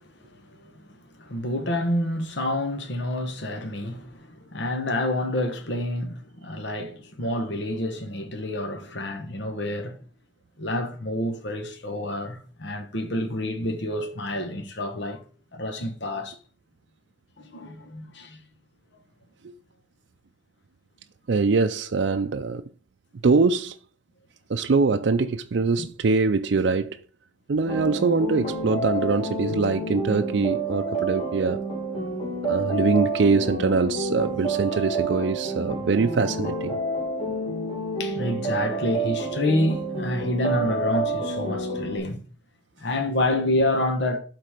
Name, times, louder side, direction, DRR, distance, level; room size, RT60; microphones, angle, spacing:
voice 1, 0.3-0.8 1.2-10.0 10.6-15.2 15.5-16.4 17.4-18.4 25.8-25.9 38.0-42.2 42.8-44.2, left 1 dB, 65° left, 1.2 m, -28 dB
voice 2, 21.3-22.6 23.2-23.8 24.5-27.0 27.5-31.6 32.5-36.8, right 4 dB, 65° right, 0.5 m, -23 dB
sound 1, 27.7-42.0, right 2 dB, 25° left, 2.4 m, -29 dB
12.0 x 4.0 x 5.0 m
head